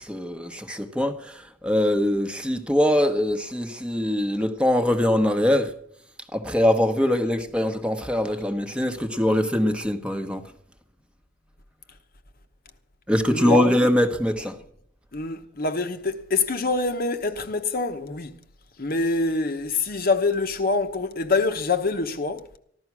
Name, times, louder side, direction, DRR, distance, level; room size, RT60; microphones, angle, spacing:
voice 1, 0.0-5.7 6.3-10.4 13.1-14.6, left 1 dB, 5° right, 1.1 m, -23 dB
voice 2, 13.3-13.7 15.1-18.3 18.8-22.4, left 3 dB, 50° left, 1.0 m, -25 dB
15.0 x 12.0 x 6.1 m
head